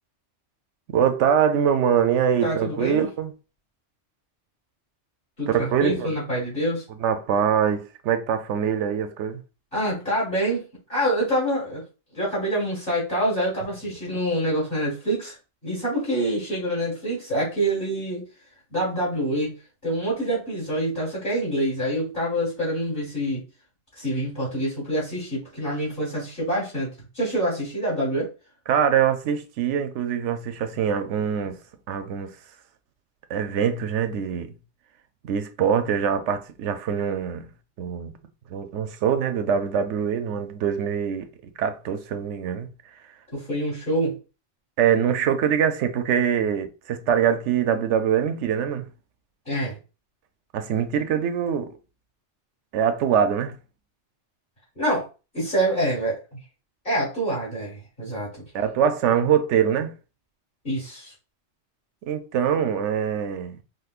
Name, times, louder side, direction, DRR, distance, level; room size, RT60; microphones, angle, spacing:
voice 1, 0.9-3.3 5.5-6.1 7.0-9.4 28.7-31.6 31.9-32.4 33.3-34.5 35.2-37.5 37.8-38.1 38.5-42.7 44.8-48.9 50.5-51.8 52.7-53.6 58.5-59.9 62.0-63.6, right 8 dB, 85° right, 0.9 m, -23 dB
voice 2, 2.4-3.1 5.4-6.8 9.7-11.8 12.1-15.4 15.6-18.2 18.7-19.5 19.8-23.4 24.0-26.9 27.1-28.3 43.3-44.2 49.5-49.8 54.8-55.1 55.3-56.4 56.8-58.4 60.6-61.1, right 1 dB, 50° left, 2.1 m, -26 dB
5.1 x 2.1 x 2.4 m
omnidirectional pair, 1.2 m